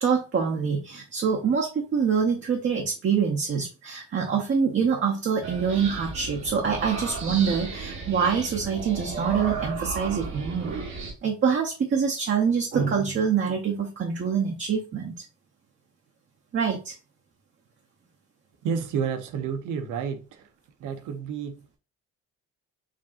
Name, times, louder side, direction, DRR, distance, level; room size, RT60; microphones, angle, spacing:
voice 1, 0.0-10.8 11.2-15.1 16.5-16.9, right 6 dB, 40° right, 0.7 m, -25 dB
sound 1, 5.4-11.1, right 4 dB, 70° right, 1.3 m, -34 dB
voice 2, 18.6-20.5 20.8-21.8, right 6 dB, 90° right, 0.7 m, -30 dB
4.9 x 2.7 x 2.4 m
cardioid pair, 90°, 30 cm